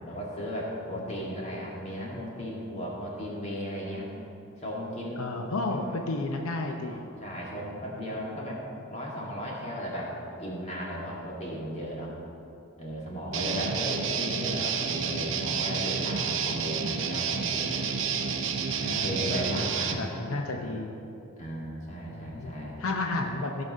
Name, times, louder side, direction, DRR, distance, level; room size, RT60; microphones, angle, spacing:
voice 1, 0.0-4.0 4.6-5.3 5.7-6.0 6.8-8.6 8.9-12.1 12.8-17.9 18.7-20.6 21.4-22.8, equal, 30° left, -4 dB, 2.1 m, -36 dB
voice 2, 5.2-7.0 13.5-14.0 18.8-20.9 22.1-22.5 22.8-23.6, left 2 dB, 85° left, 3 dB, 0.7 m, -33 dB
Guitar, 13.3-20.0, right 6 dB, 60° right, 0.7 m, -30 dB
16.0 x 5.3 x 5.3 m, 2.8 s
head